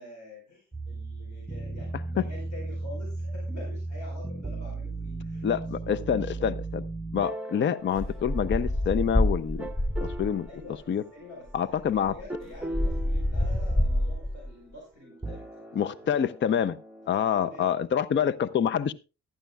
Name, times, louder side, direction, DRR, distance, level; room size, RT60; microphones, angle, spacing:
voice 1, 0.0-6.5 10.5-15.6 16.0-16.1 17.4-17.7, left 1 dB, 70° left, -1 dB, 4.5 m, -47 dB
sound 1, 0.7-9.0 9.6-10.5 12.3-14.0 15.1-17.7, right 2 dB, 5° right, 0.8 m, -37 dB
voice 2, 5.4-6.8 7.1-9.7 10.0-10.5 10.9-11.0 11.5-12.1 15.8-16.8 17.1-18.9, left 8 dB, 40° left, 15 dB, 0.5 m, -27 dB
sound 2, 7.9-10.5 11.5-11.6 11.8-14.5, left 1 dB, 15° left, 4.7 m, -27 dB
14.5 x 11.5 x 2.3 m, 0.30 s
cardioid pair, 90°, 30 cm